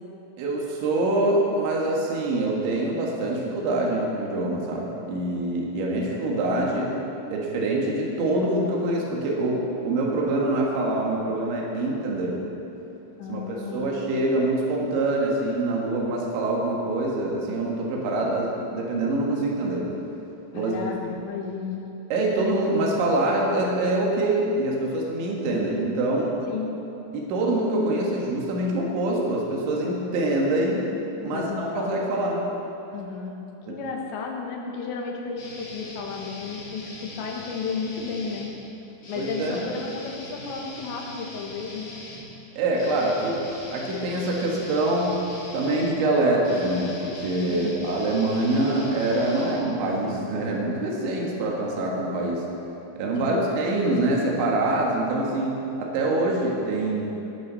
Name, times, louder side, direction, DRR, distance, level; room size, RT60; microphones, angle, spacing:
voice 1, 0.4-6.9 7.3-12.4 13.3-19.8 20.5-20.7 22.1-26.3 27.1-30.9 31.2-32.4 33.7-33.8 39.2-39.7 42.6-43.4 43.7-45.2 45.5-52.4 53.0-57.0, right 2 dB, 75° right, -2 dB, 4.0 m, -25 dB
voice 2, 13.2-13.9 20.5-21.8 26.5-26.8 31.3-32.1 32.9-33.4 33.7-38.5 38.8-41.9 47.5-47.9 53.2-53.4, left 5 dB, 75° left, 1 dB, 3.5 m, -33 dB
sound 1, 35.4-38.5 39.0-50.2, left 1 dB, 45° left, 1.6 m, -41 dB
18.5 x 12.0 x 4.1 m, 3.0 s
omnidirectional pair, 5.5 m